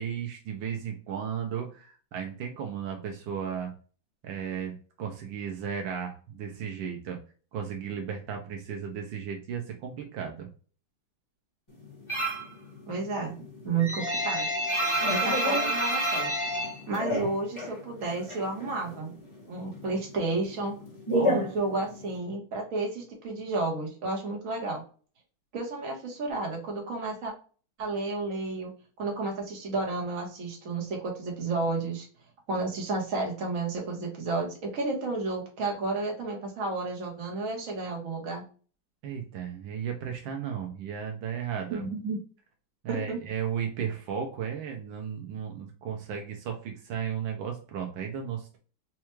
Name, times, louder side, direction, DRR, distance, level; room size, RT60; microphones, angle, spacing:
voice 1, 0.0-3.7 4.2-7.2 7.5-10.5 39.0-41.9 42.8-48.6, right 8 dB, 80° right, 2 dB, 1.4 m, -35 dB
sound 1, 12.1-12.5 12.9-17.8 18.0-19.1 19.4-22.2, equal, 15° left, 1.4 m, -28 dB
voice 2, 12.9-13.3 13.6-14.5 15.1-16.3 16.9-19.1 19.5-20.7 21.1-24.8 25.5-27.3 27.8-28.7 29.0-32.1 32.5-38.4 41.7-42.2 42.9-43.2, right 3 dB, 50° right, 0 dB, 1.3 m, -31 dB
4.4 x 2.3 x 3.0 m, 0.39 s
omnidirectional pair, 2.2 m